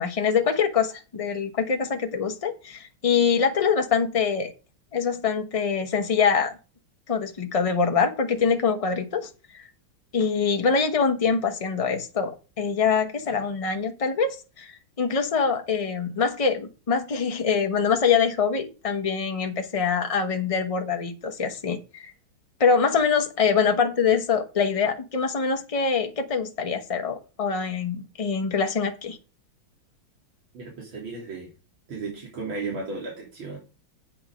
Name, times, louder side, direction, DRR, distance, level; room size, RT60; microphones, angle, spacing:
voice 1, 0.0-4.5 4.9-6.5 7.1-9.6 10.1-14.7 15.0-22.1 22.6-29.2, left 6 dB, 30° left, 0.6 m, -24 dB
voice 2, 30.5-31.5 31.9-33.6, right 3 dB, 75° right, 3.8 m, -34 dB
8.7 x 6.0 x 5.1 m
omnidirectional pair, 2.2 m